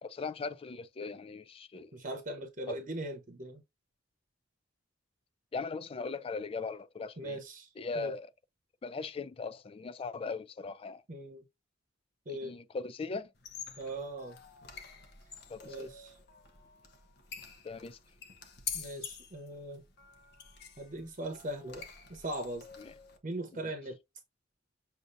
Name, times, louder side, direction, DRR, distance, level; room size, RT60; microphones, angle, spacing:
voice 1, 0.0-2.0 2.7-2.8 5.5-7.4 7.8-8.3 8.8-11.0 12.4-13.3 15.5-15.9 17.6-18.0 22.8-22.9 23.5-23.6, left 4 dB, 30° left, 0.3 m, -39 dB
voice 2, 1.9-3.6 7.2-8.1 11.1-11.4 12.3-12.5 13.8-14.4 15.6-16.2 18.7-19.8 20.8-21.8 22.1-22.6 23.2-24.0, right 1 dB, 40° right, 0.8 m, -40 dB
sound 1, 13.3-23.2, left 7 dB, 60° left, 0.9 m, -47 dB
6.5 x 2.6 x 2.6 m
head